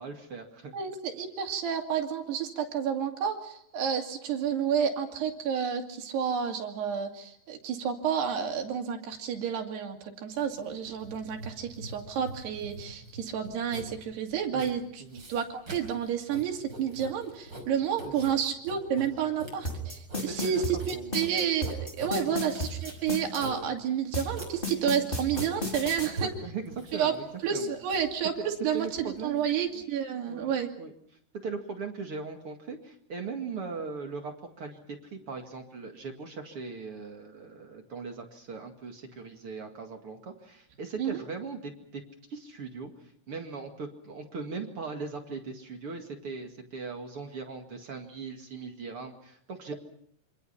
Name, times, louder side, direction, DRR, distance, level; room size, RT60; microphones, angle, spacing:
voice 1, 0.0-0.8 14.5-15.2 18.0-18.3 20.3-20.6 20.9-21.2 22.3-22.5 26.0-26.1 26.4-27.7 28.4-29.4 30.3-30.5 30.8-30.9 31.4-42.0 42.3-49.7, right 4 dB, 40° right, 4 dB, 2.4 m, -39 dB
voice 2, 0.7-15.0 15.3-26.3 26.9-27.1 27.4-30.7 41.0-41.2, right 8 dB, 90° right, 3 dB, 4.6 m, -30 dB
Writing, 10.3-29.5, right 2 dB, 25° right, 5.9 m, -44 dB
sound 1, 19.6-23.4 24.1-26.1, left 2 dB, 15° left, 4.2 m, -33 dB
26.5 x 26.0 x 5.7 m, 0.67 s
omnidirectional pair, 4.6 m